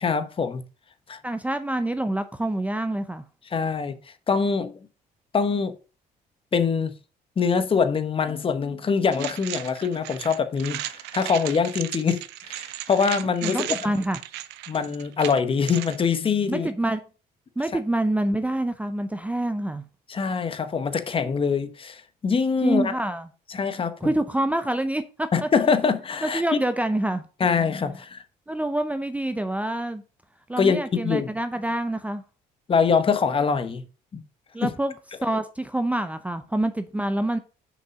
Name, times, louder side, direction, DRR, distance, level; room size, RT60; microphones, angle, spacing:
voice 1, 0.0-0.6 1.1-1.2 3.5-4.0 4.3-4.7 5.3-5.7 6.5-6.9 7.4-13.8 14.7-16.7 20.1-22.9 23.5-24.1 25.3-26.4 27.4-28.2 30.6-31.3 32.7-33.8 34.1-34.2 34.6-34.7, left 5 dB, 30° left, 1.0 m, -24 dB
voice 2, 1.2-3.2 13.4-14.2 16.5-17.0 17.6-19.8 22.6-23.3 24.0-25.5 26.2-27.3 28.5-30.0 30.5-32.2 34.5-34.9 35.2-37.4, right 1 dB, 10° right, 0.6 m, -26 dB
sound 1, 9.1-16.0, right 14 dB, 85° right, 0.6 m, -35 dB
6.5 x 5.3 x 5.1 m
cardioid pair, 110°, 17 cm